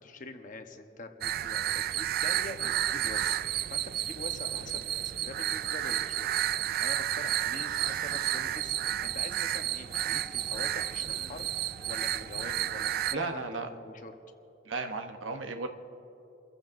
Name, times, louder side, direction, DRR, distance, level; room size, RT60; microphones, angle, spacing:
voice 1, 0.0-6.3 6.8-11.5 11.9-14.1, left 3 dB, 45° left, 6 dB, 1.0 m, -44 dB
sound 1, 1.2-13.1, right 12 dB, 50° right, 0.3 m, -31 dB
sound 2, 7.4-13.5, right 1 dB, 25° right, 1.8 m, -56 dB
sound 3, 8.0-14.0, left 2 dB, 10° left, 1.6 m, -56 dB
voice 2, 13.1-13.7 14.7-15.7, right 3 dB, 80° right, 6 dB, 0.9 m, -34 dB
29.0 x 15.0 x 2.6 m, 3.0 s
head